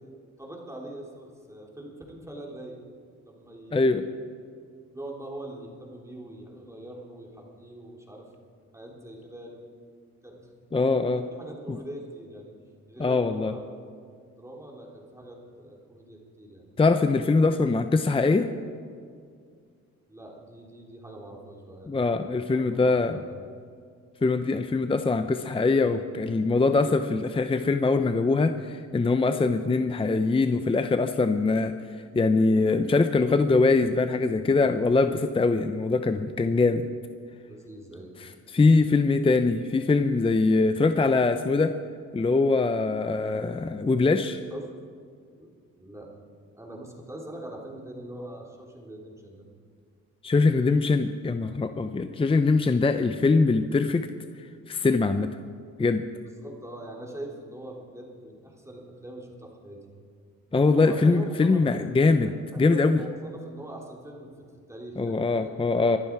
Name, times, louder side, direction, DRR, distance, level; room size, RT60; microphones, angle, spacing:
voice 1, 0.4-2.8 3.3-4.0 4.9-8.3 8.7-9.6 10.2-10.5 11.2-12.5 12.9-13.7 14.3-16.7 20.1-23.4 37.5-38.1 44.5-44.7 45.4-45.5 45.8-46.1 46.5-49.5 56.1-59.8 60.7-61.6 62.2-64.3 64.7-65.6, right 1 dB, 10° right, -2 dB, 3.6 m, -42 dB
voice 2, 3.7-4.0 10.7-11.2 13.0-13.5 16.8-18.5 21.9-23.2 24.2-31.7 32.1-36.9 38.2-41.7 42.1-44.4 50.2-54.1 54.7-55.3 55.8-56.0 60.5-63.0 65.0-66.0, left 3 dB, 20° left, 8 dB, 0.7 m, -23 dB
24.0 x 11.5 x 4.8 m, 2.1 s
cardioid pair, 90°, 30 cm